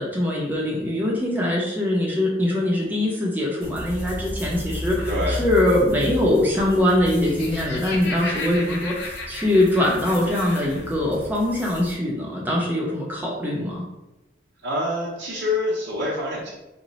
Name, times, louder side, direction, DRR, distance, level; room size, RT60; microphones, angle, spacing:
voice 1, 0.0-13.8, left 1 dB, 10° right, -4 dB, 0.6 m, -22 dB
sound 1, 3.6-11.9, left 1 dB, 15° left, 1.0 m, -34 dB
voice 2, 5.1-5.4 14.6-16.5, left 1 dB, 75° right, -7 dB, 0.6 m, -26 dB
Laughter, 7.1-10.9, left 3 dB, 65° left, 0.6 m, -34 dB
2.9 x 2.1 x 3.9 m, 0.99 s
head